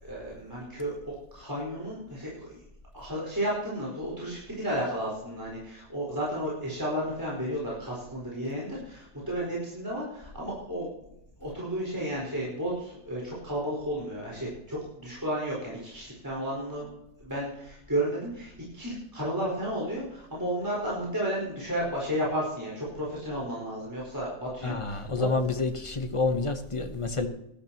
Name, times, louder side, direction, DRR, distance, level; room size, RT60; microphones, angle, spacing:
voice 1, 0.0-2.5 2.9-10.9 11.4-16.9 17.2-25.3, equal, 15° right, 4.7 m, -33 dB
voice 2, 24.6-27.3, left 3 dB, 25° left, 1.0 m, -28 dB
18.0 x 12.5 x 3.0 m
omnidirectional pair, 1.5 m